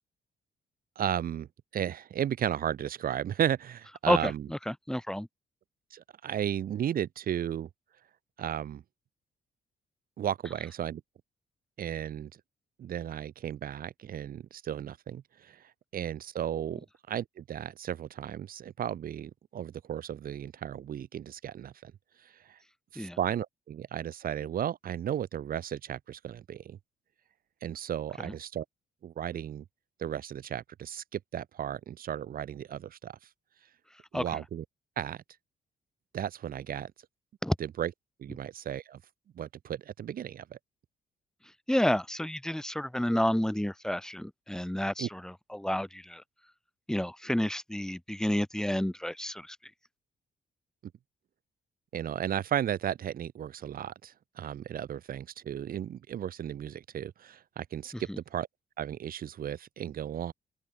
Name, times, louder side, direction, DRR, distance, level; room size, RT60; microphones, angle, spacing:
voice 1, 1.0-1.5 1.7-4.5 5.9-7.7 8.4-8.8 10.2-11.0 11.8-12.3 12.8-15.6 15.9-21.9 22.5-22.6 22.9-26.8 27.6-28.6 29.0-29.6 30.0-33.2 34.1-34.6 35.0-35.2 36.1-36.9 37.6-37.9 38.2-39.0 39.3-40.6 45.0-45.1 51.9-58.5 58.8-60.3, right 10 dB, 65° right, 4.5 m, -34 dB
voice 2, 4.1-5.3 23.0-23.2 28.2-28.3 34.1-34.4 37.4-37.5 41.7-46.2 46.9-49.6 57.9-58.2, left 1 dB, 5° left, 3.9 m, -30 dB
open air
cardioid pair, 115°, 16 cm